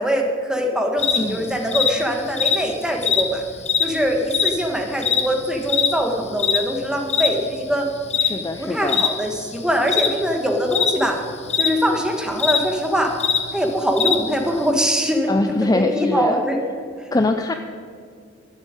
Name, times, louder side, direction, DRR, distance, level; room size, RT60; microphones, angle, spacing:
voice 1, 0.0-3.4 3.8-7.9 8.6-11.2 11.6-13.2 13.5-15.3 15.6-16.6, equal, 5° right, 3 dB, 1.5 m, -22 dB
sound 1, 1.0-14.7, left 7 dB, 35° left, 1.0 m, -23 dB
voice 2, 1.2-1.6 8.2-9.0 15.3-16.4 17.1-17.5, left 2 dB, 20° left, 6 dB, 0.5 m, -22 dB
14.0 x 7.3 x 8.9 m, 2.3 s
head